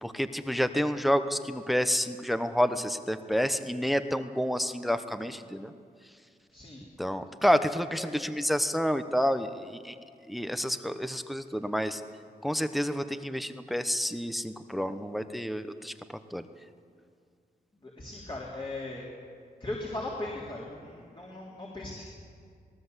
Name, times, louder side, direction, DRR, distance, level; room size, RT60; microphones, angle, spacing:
voice 1, 0.0-5.7 7.0-9.9 10.3-12.0 12.4-15.9 16.3-16.4, equal, ahead, 10 dB, 1.0 m, -29 dB
voice 2, 17.8-19.0 19.6-22.0, left 2 dB, 30° left, -4 dB, 3.7 m, -38 dB
19.0 x 18.5 x 8.1 m, 2.2 s
cardioid pair, 80°, 16 cm